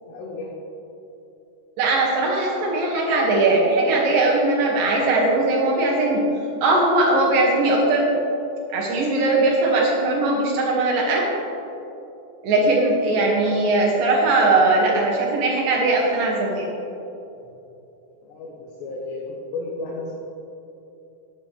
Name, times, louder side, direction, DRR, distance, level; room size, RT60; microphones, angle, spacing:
voice 1, 0.1-0.5 18.2-19.3 19.5-20.1, left 3 dB, 85° left, -3 dB, 3.4 m, -33 dB
voice 2, 1.8-6.2 6.6-8.1 8.7-11.3 12.4-16.7, right 2 dB, 60° right, -3 dB, 3.6 m, -19 dB
16.0 x 10.5 x 3.4 m, 2.9 s
omnidirectional pair, 4.7 m